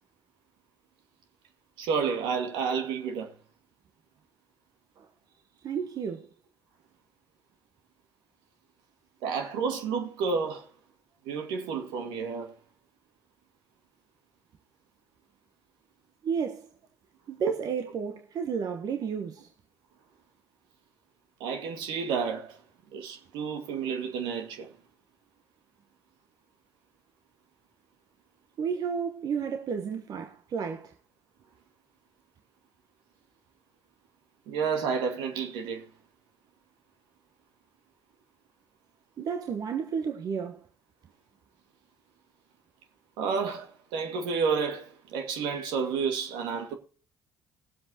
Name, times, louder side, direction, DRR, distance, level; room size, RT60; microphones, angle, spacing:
voice 1, 1.8-3.3 9.2-10.7 11.3-12.5 21.4-22.6 22.9-24.7 34.5-35.8 43.2-46.7, right 5 dB, 70° right, 2.0 m, -30 dB
voice 2, 5.6-6.3 16.2-16.7 17.3-19.5 28.6-30.9 39.2-40.6, right 6 dB, 55° right, 1.2 m, -31 dB
20.5 x 7.7 x 2.9 m
hypercardioid pair, 55°, 8 cm